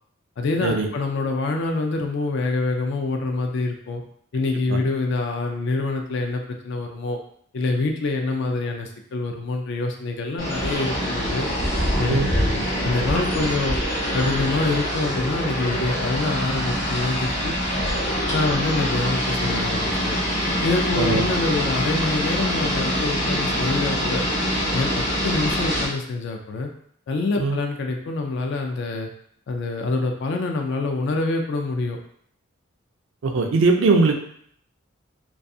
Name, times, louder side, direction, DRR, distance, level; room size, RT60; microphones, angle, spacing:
voice 1, 0.4-4.0 4.3-7.2 7.5-11.5 12.0-13.8 14.1-17.5 18.3-20.2 20.6-24.2 24.7-26.7 27.1-29.1 29.5-32.0, left 3 dB, 60° left, 3 dB, 0.3 m, -26 dB
sound 1, 10.4-25.8, equal, 40° left, 0.8 m, -24 dB
voice 2, 21.0-21.3 27.4-27.6 33.2-34.1, right 3 dB, 65° right, 4 dB, 0.4 m, -20 dB
2.3 x 2.3 x 2.6 m, 0.64 s
head